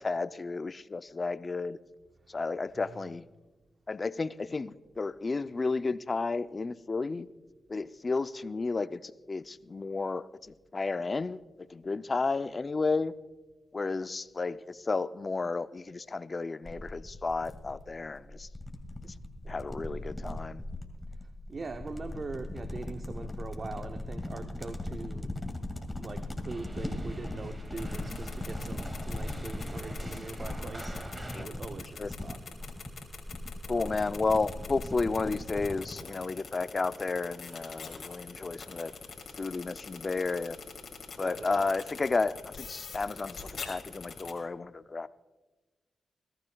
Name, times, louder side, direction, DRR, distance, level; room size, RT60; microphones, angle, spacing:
voice 1, 0.0-1.8 2.3-3.2 3.9-7.3 7.7-11.4 11.7-13.1 13.7-18.5 19.0-19.1 19.5-20.6 31.3-31.5 32.0-32.1 33.7-38.9 39.4-40.6 41.2-45.1, left 3 dB, 45° left, 14 dB, 0.5 m, -32 dB
voice 2, 2.7-3.2 21.2-25.3 26.0-31.0 31.4-32.4 33.7-34.0 41.2-41.7, right 3 dB, 55° right, 8 dB, 0.7 m, -42 dB
sound 1, 16.7-36.0, left 1 dB, 15° left, 2.1 m, -39 dB
sound 2, 26.5-31.5, right 1 dB, 30° right, 2.1 m, -45 dB
sound 3, 27.7-44.3, left 5 dB, 70° left, 2.6 m, -43 dB
21.5 x 13.0 x 2.3 m, 1.2 s
supercardioid pair, 45°, 0 cm